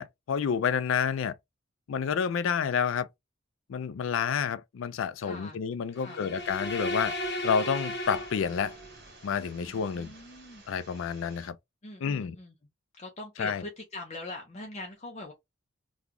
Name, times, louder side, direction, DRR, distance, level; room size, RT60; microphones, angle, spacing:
voice 1, 0.0-1.3 1.9-3.1 3.7-7.1 7.4-8.8 9.2-10.1 10.7-11.6 12.0-12.4 13.4-13.6, left 7 dB, 80° left, 0.4 m, -29 dB
voice 2, 5.2-5.6 5.9-6.3 9.6-10.6 11.8-12.5 12.9-15.3, left 2 dB, 35° left, 0.6 m, -42 dB
sound 1, 6.0-9.0, equal, 60° left, 0.9 m, -35 dB
sound 2, 6.4-11.5, right 2 dB, 55° right, 1.7 m, -53 dB
2.9 x 2.3 x 3.6 m
head